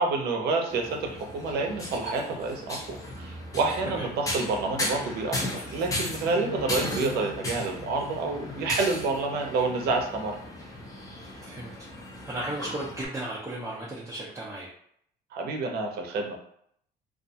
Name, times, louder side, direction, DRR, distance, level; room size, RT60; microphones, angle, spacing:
voice 1, 0.0-10.4 15.3-16.4, right 3 dB, 70° right, 2 dB, 0.6 m, -28 dB
sound 1, 0.7-13.1, left 1 dB, 20° left, 0.7 m, -36 dB
voice 2, 11.4-11.7 12.2-14.7, right 1 dB, 15° right, -5 dB, 0.5 m, -35 dB
2.4 x 2.2 x 2.7 m, 0.67 s
cardioid pair, 110°, 17 cm